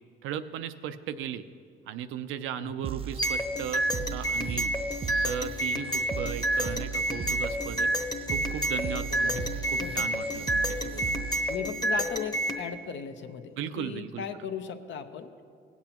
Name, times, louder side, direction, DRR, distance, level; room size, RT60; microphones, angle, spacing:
voice 1, 0.2-1.4 1.9-4.7 5.2-7.9 8.3-9.3 9.7-11.1 13.6-14.2, right 9 dB, 85° right, 11 dB, 0.5 m, -36 dB
sound 1, 2.8-11.8, right 7 dB, 30° right, 0.3 m, -38 dB
sound 2, 3.2-12.6, right 1 dB, 20° left, 1.0 m, -29 dB
voice 2, 9.1-10.4 11.5-15.3, left 7 dB, 70° left, 8 dB, 0.7 m, -38 dB
17.0 x 8.3 x 2.9 m, 2.2 s
cardioid pair, 90°, 20 cm